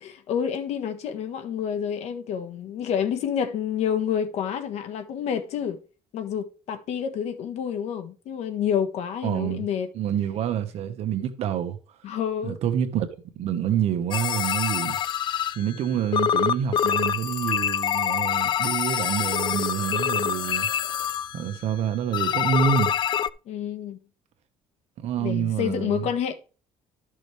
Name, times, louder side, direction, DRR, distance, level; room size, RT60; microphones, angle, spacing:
voice 1, 0.0-5.8 6.1-9.9 12.0-12.6 23.5-24.0 25.2-26.3, left 8 dB, 65° left, 1.3 m, -28 dB
voice 2, 9.2-9.6 9.9-11.8 12.4-13.1 13.3-15.0 15.5-20.7 21.3-23.0 25.0-26.1, right 9 dB, 60° right, 1.3 m, -27 dB
sound 1, 14.1-15.9 16.1-21.7 22.1-23.3, left 9 dB, 40° left, 0.4 m, -25 dB
12.5 x 6.2 x 3.3 m
cardioid pair, 130°, 12 cm